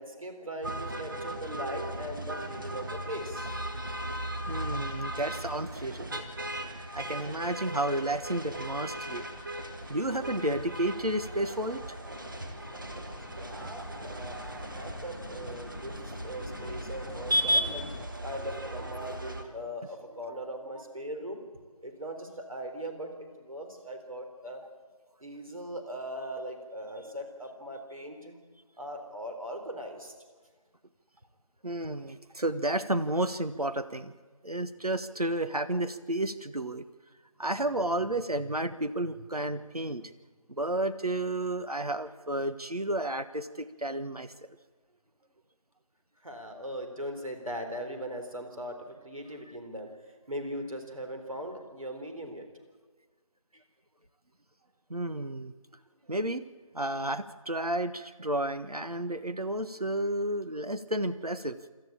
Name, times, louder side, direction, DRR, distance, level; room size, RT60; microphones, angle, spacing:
voice 1, 0.0-3.5 13.3-17.9 18.2-21.4 21.8-24.6 25.2-28.4 28.8-30.1 46.2-49.9 50.3-52.5, equal, 65° right, 5 dB, 3.9 m, -39 dB
sound 1, 0.6-19.4, right 1 dB, 35° right, 1.7 m, -36 dB
voice 2, 4.5-6.2 6.9-9.3 9.9-11.8 31.6-34.1 34.4-36.8 37.4-40.1 40.5-44.3 54.9-55.5 56.1-56.5 56.7-61.6, right 1 dB, 90° right, 11 dB, 1.4 m, -31 dB
sound 2, 8.1-18.1, left 2 dB, 45° left, 0.8 m, -47 dB
26.0 x 13.5 x 8.8 m, 1.4 s
figure-of-eight pair, 170°, 19 cm